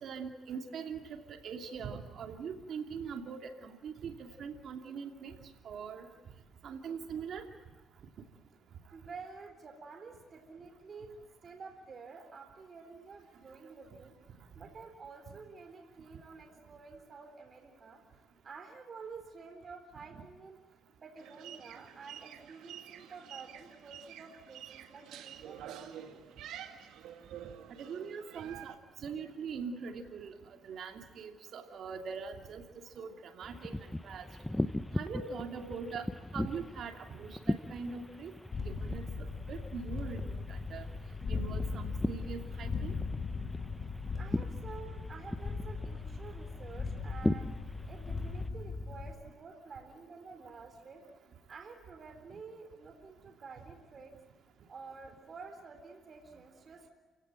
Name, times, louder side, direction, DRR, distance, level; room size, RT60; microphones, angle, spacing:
voice 1, 0.0-5.4 5.6-6.1 6.6-7.4 20.1-20.2 27.8-30.3 30.6-32.6 33.0-34.3 34.9-36.1 36.3-38.3 38.6-40.9 41.3-42.9, right 6 dB, 65° right, 4 dB, 2.7 m, -42 dB
voice 2, 8.9-11.1 11.4-20.6 21.0-26.3 44.2-47.5 47.9-51.0 51.5-54.1 54.7-56.9, right 4 dB, 45° right, 5 dB, 3.7 m, -50 dB
sound 1, 21.2-28.7, right 10 dB, 85° right, 2.2 m, -49 dB
sound 2, 33.4-48.5, left 1 dB, 10° left, 0.9 m, -39 dB
sound 3, 38.5-49.1, left 4 dB, 45° left, 2.0 m, -38 dB
29.0 x 17.0 x 9.0 m, 1.3 s
cardioid pair, 90°, 0 cm